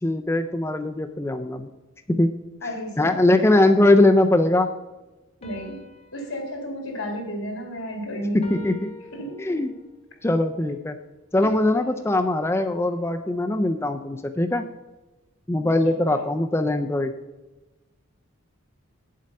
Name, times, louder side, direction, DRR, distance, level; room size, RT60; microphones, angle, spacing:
voice 1, 0.0-1.7 2.1-2.3 3.0-4.7 8.3-8.9 9.4-9.7 10.2-11.0 11.3-14.6 15.5-17.1, left 2 dB, 10° left, 6 dB, 0.3 m, -21 dB
voice 2, 2.6-3.6 5.4-5.8 6.1-8.8 9.1-9.6 15.5-16.2, equal, 80° left, 2 dB, 2.5 m, -33 dB
sound 1, 5.4-7.9 8.4-10.0 11.4-13.1, left 3 dB, 30° left, 1.1 m, -47 dB
8.6 x 7.5 x 5.3 m, 1.1 s
head